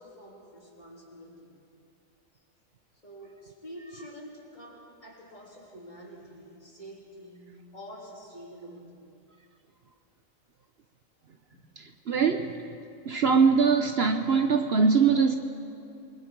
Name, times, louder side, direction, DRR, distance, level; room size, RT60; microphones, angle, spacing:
voice 1, 0.0-1.6 3.0-9.1 11.5-11.7, equal, 35° left, -4 dB, 3.7 m, -47 dB
voice 2, 11.8-12.6 13.0-15.3, right 5 dB, 55° right, 5 dB, 1.0 m, -22 dB
28.0 x 20.5 x 4.6 m, 2.6 s
omnidirectional pair, 1.4 m